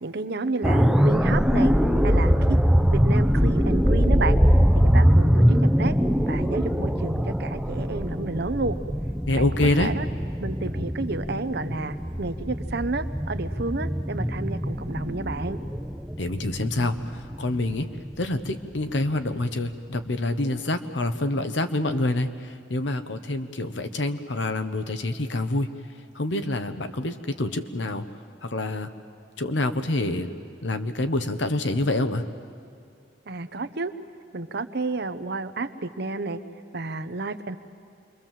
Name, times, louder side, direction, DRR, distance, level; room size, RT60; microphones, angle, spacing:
voice 1, 0.0-1.7 2.0-2.6 2.9-4.4 4.7-5.9 6.3-8.8 9.3-10.1 10.4-15.6 33.3-33.9 34.3-36.4 36.7-37.6, right 3 dB, 60° right, 10 dB, 1.0 m, -31 dB
sound 1, 0.6-18.5 18.9-19.1, equal, 5° right, 0.6 m, -22 dB
voice 2, 9.3-9.9 16.2-17.9 18.2-25.7 26.1-28.0 28.4-28.9 29.4-30.3 30.6-32.2, left 2 dB, 75° left, 8 dB, 1.2 m, -26 dB
27.5 x 22.5 x 7.6 m, 2.5 s
head